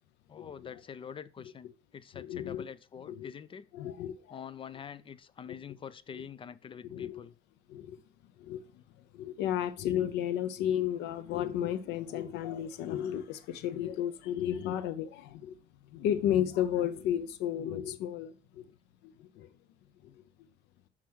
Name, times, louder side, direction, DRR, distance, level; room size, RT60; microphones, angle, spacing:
voice 1, 0.3-3.7 4.3-7.4, left 7 dB, 30° left, 0.5 m, -45 dB
voice 2, 2.1-2.6 3.1-3.3 3.7-4.4 6.8-7.2 7.7-8.0 8.4-8.6 9.1-15.5 15.9-18.6 19.0-19.5, left 10 dB, 90° left, 0.6 m, -33 dB
5.9 x 4.8 x 6.1 m
cardioid pair, 110°, 17 cm